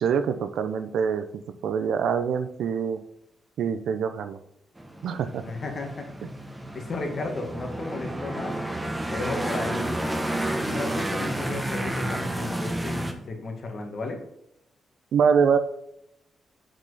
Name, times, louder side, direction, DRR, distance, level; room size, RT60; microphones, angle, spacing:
voice 1, 0.0-3.0 3.6-4.4 5.0-5.4 15.1-15.6, right 6 dB, 85° right, 10 dB, 0.7 m, -24 dB
sound 1, 4.8-13.1, right 1 dB, 10° right, 1.0 m, -31 dB
voice 2, 5.4-6.1 6.7-8.5 9.1-10.0 10.7-14.2, left 3 dB, 50° left, 2 dB, 1.9 m, -33 dB
7.3 x 5.3 x 4.1 m, 0.82 s
cardioid pair, 120°, 0 cm